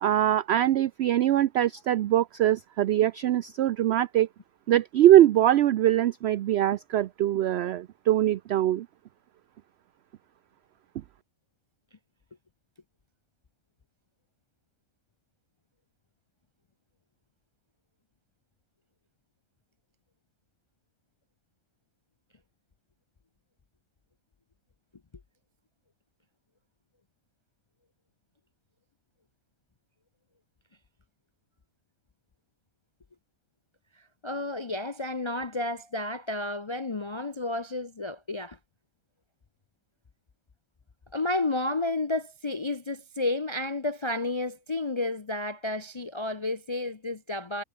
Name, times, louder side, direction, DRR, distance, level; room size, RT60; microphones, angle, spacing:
voice 1, 0.0-4.3 4.7-8.9, right 12 dB, 70° right, 0.6 m, -22 dB
voice 2, 34.2-38.6 41.1-47.6, left 2 dB, 45° left, 0.3 m, -31 dB
omnidirectional pair, 1.5 m